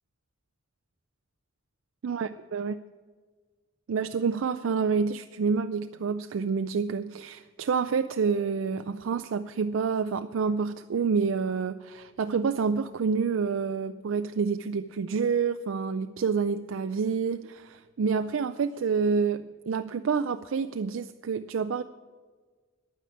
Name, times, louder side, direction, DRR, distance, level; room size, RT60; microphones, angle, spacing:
voice 1, 2.0-2.8 3.9-21.8, right 5 dB, 85° right, 9 dB, 0.4 m, -28 dB
10.5 x 9.2 x 8.5 m, 1.5 s
head